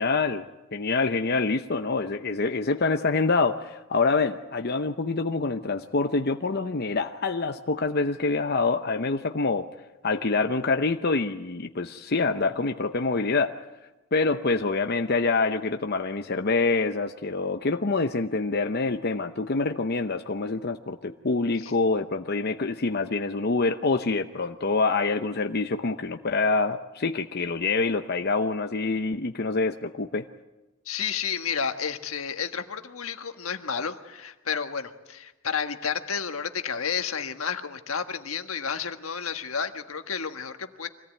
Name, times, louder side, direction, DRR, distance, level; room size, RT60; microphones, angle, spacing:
voice 1, 0.0-9.7 10.0-13.6 14.1-30.2, left 3 dB, 50° left, 6 dB, 0.8 m, -26 dB
voice 2, 30.8-40.9, left 6 dB, 80° left, 7 dB, 1.5 m, -31 dB
25.0 x 17.5 x 9.2 m, 1.1 s
head